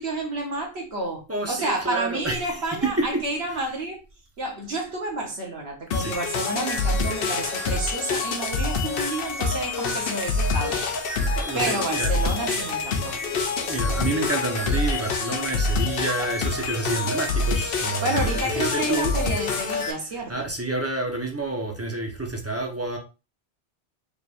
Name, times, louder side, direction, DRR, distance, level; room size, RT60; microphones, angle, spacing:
voice 1, 0.0-4.0 4.4-10.8 11.1-11.2 11.5-13.2 18.0-20.5, right 2 dB, 75° right, 1.4 m, -30 dB
voice 2, 1.3-3.2 3.5-3.6 6.0-6.1 11.1-12.1 12.4-19.1 20.1-23.0, right 2 dB, 15° right, 0.8 m, -29 dB
sound 1, 5.9-19.9, left 3 dB, 65° left, 0.9 m, -26 dB
5.1 x 3.1 x 2.5 m
omnidirectional pair, 1.1 m